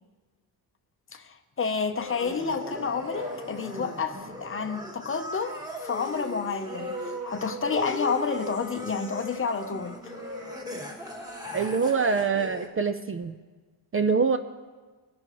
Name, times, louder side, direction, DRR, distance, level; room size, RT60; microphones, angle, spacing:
voice 1, 1.1-10.2, left 5 dB, 30° left, 8 dB, 0.7 m, -30 dB
sound 1, 1.9-12.7, left 1 dB, 10° right, 1.5 m, -39 dB
sound 2, 2.0-13.1, right 2 dB, 45° right, 4.4 m, -43 dB
voice 2, 11.5-13.4 13.9-14.4, right 5 dB, 30° right, 9 dB, 0.5 m, -24 dB
19.0 x 10.5 x 3.0 m, 1.4 s
cardioid pair, 120°, 43 cm